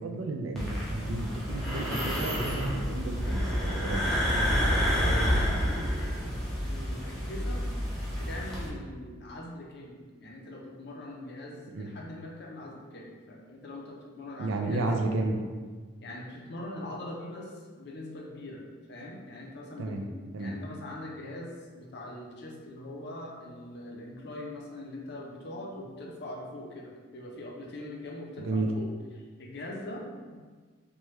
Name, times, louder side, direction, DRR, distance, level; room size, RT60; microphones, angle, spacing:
voice 1, 0.0-4.0 11.7-11.9 14.4-15.4 19.8-20.0 20.3-20.5 28.4-28.7, right 2 dB, 80° right, 3 dB, 0.4 m, -32 dB
sound 1, 0.6-8.7, equal, ahead, 0.5 m, -29 dB
voice 2, 4.8-7.7 8.1-14.9 16.0-20.1 20.4-30.4, left 1 dB, 55° left, -2 dB, 0.5 m, -42 dB
3.2 x 2.2 x 3.0 m, 1.5 s
head